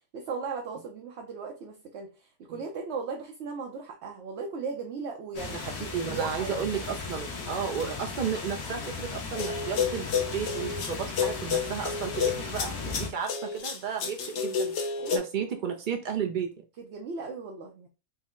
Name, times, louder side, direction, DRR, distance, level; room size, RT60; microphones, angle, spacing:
voice 1, 0.1-5.6 6.1-6.6 15.0-15.3 16.9-17.9, right 5 dB, 65° right, 0.8 m, -37 dB
sound 1, 5.3-13.1, left 4 dB, 80° left, 1.4 m, -37 dB
voice 2, 5.5-16.5, right 7 dB, 85° right, 0.4 m, -33 dB
sound 2, 9.3-15.2, left 6 dB, 60° left, 0.9 m, -30 dB
4.3 x 2.0 x 3.6 m
omnidirectional pair, 1.5 m